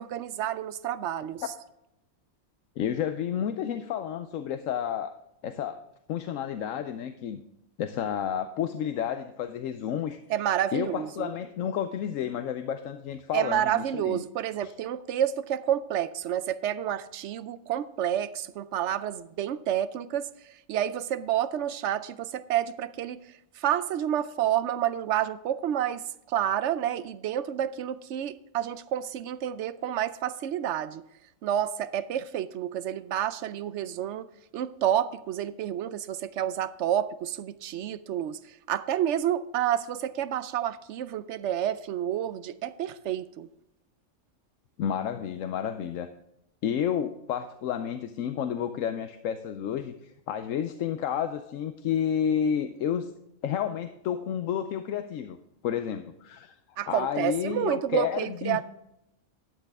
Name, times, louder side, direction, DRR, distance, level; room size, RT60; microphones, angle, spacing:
voice 1, 0.0-1.4 10.3-11.3 13.3-23.2 23.6-31.0 31.4-34.3 34.5-43.5 56.8-58.6, right 10 dB, 70° right, 0.8 m, -29 dB
voice 2, 2.8-5.2 5.4-5.8 6.1-7.4 7.8-10.2 10.7-14.2 14.6-14.7 44.8-46.1 46.6-53.1 53.4-55.4 55.6-56.6 56.9-58.6, left 9 dB, 80° left, 1.0 m, -31 dB
12.0 x 9.0 x 3.5 m
omnidirectional pair, 1.3 m